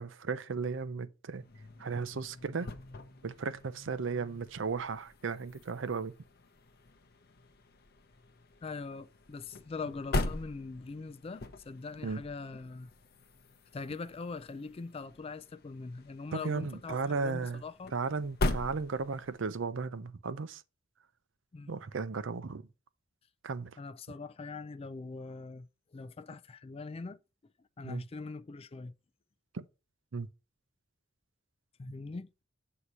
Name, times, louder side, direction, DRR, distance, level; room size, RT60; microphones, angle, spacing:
voice 1, 0.0-1.4 1.8-2.7 3.2-6.1 12.0-12.2 16.3-17.6 17.9-20.6 21.7-22.7 23.4-23.8 27.8-28.0 29.5-29.6 30.1-30.3, right 4 dB, 75° right, 0.6 m, -35 dB
sound 1, 1.4-19.5, left 2 dB, 55° left, 0.7 m, -41 dB
voice 2, 8.6-12.9 13.7-17.9 21.5-21.7 23.8-27.2 27.8-28.9 31.8-32.3, left 4 dB, 30° left, 0.3 m, -42 dB
8.1 x 2.8 x 6.1 m
head